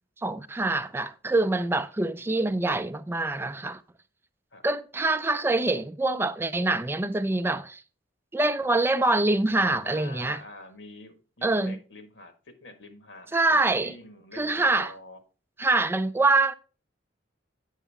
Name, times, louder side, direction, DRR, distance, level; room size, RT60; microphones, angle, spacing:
voice 1, 0.2-3.8 4.6-7.8 8.3-10.4 11.4-11.8 13.3-13.9 14.3-14.9 15.6-16.5, right 2 dB, 15° right, 0.3 m, -25 dB
voice 2, 9.8-15.2, left 2 dB, 90° left, 1.6 m, -46 dB
8.2 x 6.0 x 3.4 m
head